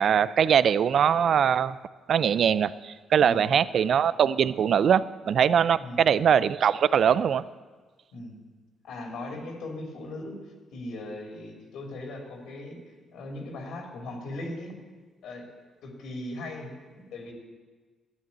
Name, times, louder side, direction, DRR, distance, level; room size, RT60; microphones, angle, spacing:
voice 1, 0.0-1.8 2.1-7.4, right 8 dB, 60° right, 18 dB, 0.4 m, -22 dB
voice 2, 3.2-3.6 5.8-6.0 8.1-8.4 8.8-10.4 10.7-12.8 13.1-14.8 15.2-15.5 15.8-17.3, left 2 dB, 80° left, 2 dB, 2.9 m, -38 dB
12.5 x 9.5 x 8.5 m, 1.4 s
cardioid pair, 90°, 0 cm